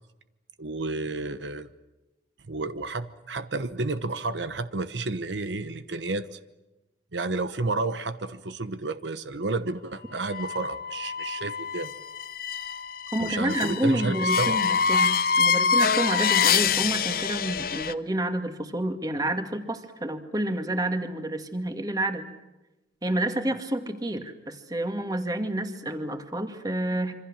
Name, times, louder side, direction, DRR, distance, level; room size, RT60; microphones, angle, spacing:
voice 1, 0.6-1.7 2.5-6.4 7.1-11.9 13.2-14.6, right 3 dB, 75° right, 12 dB, 1.1 m, -31 dB
sound 1, 10.2-17.9, left 6 dB, 55° left, 0.9 m, -25 dB
voice 2, 13.1-22.3 23.0-27.1, right 1 dB, 20° right, 7 dB, 2.1 m, -29 dB
26.5 x 25.5 x 7.4 m, 1.0 s
head